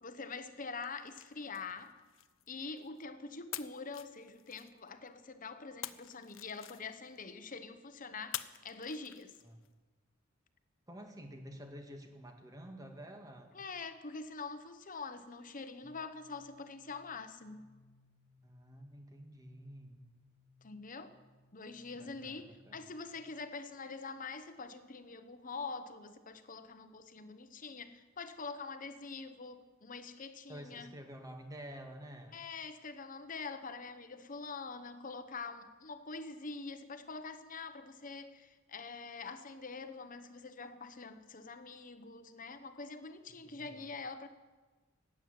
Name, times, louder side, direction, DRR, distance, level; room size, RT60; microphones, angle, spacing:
voice 1, 0.0-2.0 2.5-9.3 13.5-17.7 20.6-21.1 21.5-30.9 32.3-44.3, left 4 dB, 40° left, 1.0 m, -45 dB
sound 1, 0.7-3.0 3.5-5.1 5.8-7.2 8.3-9.7, left 13 dB, 70° left, 0.6 m, -47 dB
voice 2, 10.9-13.6 18.4-20.0 21.9-22.8 30.5-32.4 43.4-43.9, equal, 20° right, 1.9 m, -50 dB
sound 2, 15.8-23.4, left 2 dB, ahead, 4.2 m, -67 dB
15.5 x 8.9 x 9.4 m
head